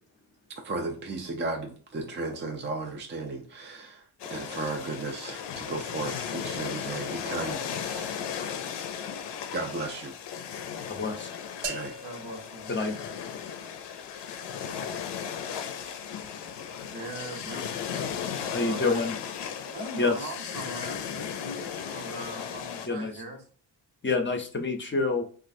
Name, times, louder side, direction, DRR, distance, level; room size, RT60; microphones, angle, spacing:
voice 1, 0.6-4.0 4.3-8.2 9.5-10.1 11.7-11.9, right 2 dB, 30° right, 3 dB, 0.4 m, -34 dB
sound 1, 4.2-22.9, left 7 dB, 90° left, 0.5 m, -36 dB
voice 2, 10.9-11.3 12.7-12.9 18.5-19.1 20.0-20.1 22.9-23.1 24.0-25.2, left 3 dB, 30° left, 4 dB, 0.6 m, -27 dB
sound 2, 11.6-13.6, right 4 dB, 90° right, 0.6 m, -40 dB
voice 3, 12.0-12.9 15.7-16.3 16.9-17.8 18.5-19.2 19.7-23.4, right 1 dB, 70° right, 2 dB, 1.2 m, -41 dB
3.0 x 2.4 x 2.5 m, 0.43 s
cardioid pair, 100°, 40 cm